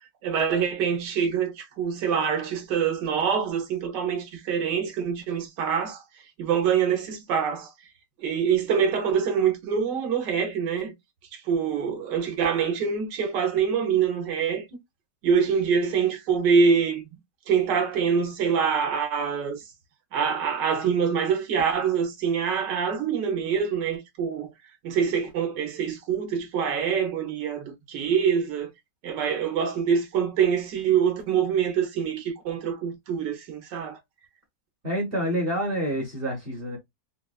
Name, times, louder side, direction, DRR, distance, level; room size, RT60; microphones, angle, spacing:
voice 1, 0.2-7.7 8.2-10.9 11.3-14.7 15.2-17.0 17.5-19.6 20.1-24.5 24.8-28.7 29.0-34.0, right 6 dB, 70° right, 1.6 m, -25 dB
voice 2, 34.8-36.8, equal, 35° right, 1.2 m, -27 dB
3.9 x 2.3 x 2.4 m
omnidirectional pair, 2.0 m